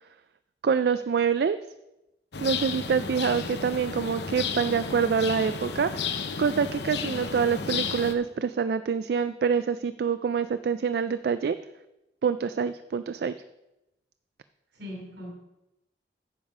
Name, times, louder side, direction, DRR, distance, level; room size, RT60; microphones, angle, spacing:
voice 1, 0.6-1.6 2.4-6.1 6.4-11.6 12.2-13.3, right 6 dB, 60° right, 12 dB, 0.3 m, -26 dB
sound 1, 2.3-8.1, left 5 dB, 70° left, 0.7 m, -33 dB
voice 2, 14.7-15.3, left 1 dB, 80° right, 0 dB, 3.5 m, -40 dB
9.6 x 7.2 x 4.9 m, 0.93 s
head